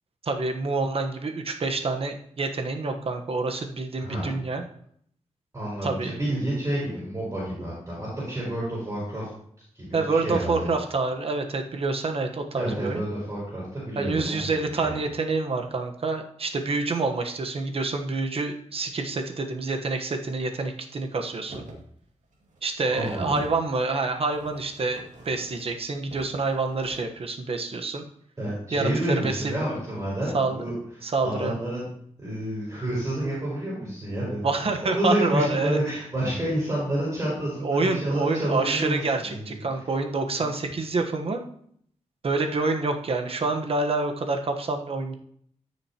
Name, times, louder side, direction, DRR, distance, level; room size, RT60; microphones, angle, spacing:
voice 1, 0.2-4.6 5.8-6.1 9.9-13.1 14.0-21.6 22.6-28.0 28.7-28.9 29.2-29.5 30.3-30.6 31.0-31.6 34.4-35.8 37.6-41.4 42.2-45.2, right 3 dB, 50° right, 4 dB, 1.1 m, -27 dB
voice 2, 4.0-4.3 5.5-9.3 9.7-10.7 12.5-15.0 22.9-23.4 28.4-30.7 31.2-31.8 32.2-34.5 34.8-39.0 39.3-39.5 40.3-40.4, right 1 dB, 20° right, -8 dB, 4.6 m, -29 dB
sound 1, 21.5-21.9 22.2-23.6 24.3-25.8 26.1-27.0, right 2 dB, 85° right, 2.1 m, -45 dB
14.0 x 6.4 x 2.9 m, 0.64 s
wide cardioid pair, 150°, 12 cm